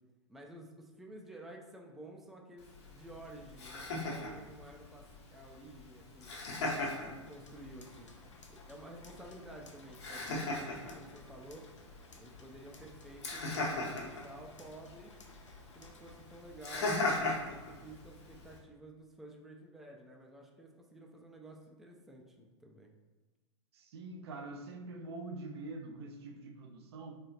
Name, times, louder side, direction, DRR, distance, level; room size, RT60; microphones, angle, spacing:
voice 1, 0.3-5.0 5.3-6.3 7.1-8.1 8.7-11.7 12.2-15.1 15.7-22.9, right 1 dB, ahead, 0 dB, 0.3 m, -52 dB
Laughter, 2.6-18.6, left 2 dB, 65° left, 1.0 m, -40 dB
sound 1, 7.2-16.4, left 3 dB, 80° left, 0.6 m, -59 dB
voice 2, 23.7-27.2, right 2 dB, 55° right, 5 dB, 0.5 m, -45 dB
3.6 x 3.3 x 2.8 m, 1.2 s
figure-of-eight pair, 100°, 15 cm